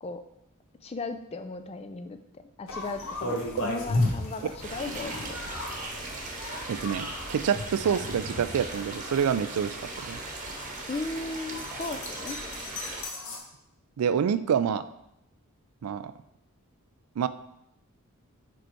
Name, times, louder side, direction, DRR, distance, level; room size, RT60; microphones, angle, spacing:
voice 1, 0.8-5.4 10.9-12.4, left 3 dB, 30° left, 8 dB, 0.4 m, -36 dB
sound 1, 2.7-13.4, left 2 dB, 65° left, 1.2 m, -35 dB
sound 2, 4.6-13.0, right 2 dB, 35° right, 1.0 m, -38 dB
voice 2, 6.7-10.2 14.0-14.9 15.8-16.1 17.2-17.3, right 7 dB, 85° right, 13 dB, 0.4 m, -27 dB
5.1 x 4.7 x 4.5 m, 0.82 s
head